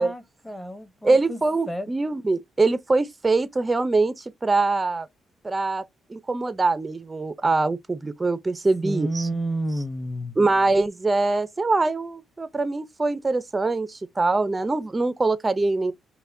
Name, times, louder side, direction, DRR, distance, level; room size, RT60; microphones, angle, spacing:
voice 1, 0.0-1.9 8.8-10.4, right 1 dB, 10° left, 0.8 m, -30 dB
voice 2, 1.0-5.1 5.4-5.8 6.1-9.3 10.4-15.9, right 3 dB, 20° right, 0.4 m, -23 dB
5.4 x 2.1 x 2.5 m
cardioid pair, 90°, 0 cm